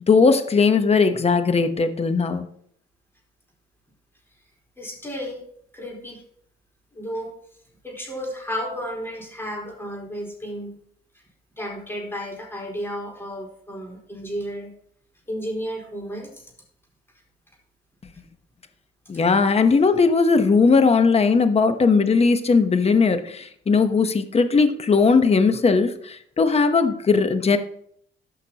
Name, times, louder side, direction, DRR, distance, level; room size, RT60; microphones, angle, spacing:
voice 1, 0.0-2.5 19.1-27.6, left 4 dB, 30° left, 9 dB, 1.0 m, -18 dB
voice 2, 4.8-5.4 5.7-6.2 6.9-7.3 7.8-10.8 11.1-11.2 11.6-14.7 15.3-16.5, equal, 10° left, -2 dB, 4.1 m, -33 dB
14.0 x 5.8 x 2.9 m, 0.65 s
cardioid pair, 90°, 20 cm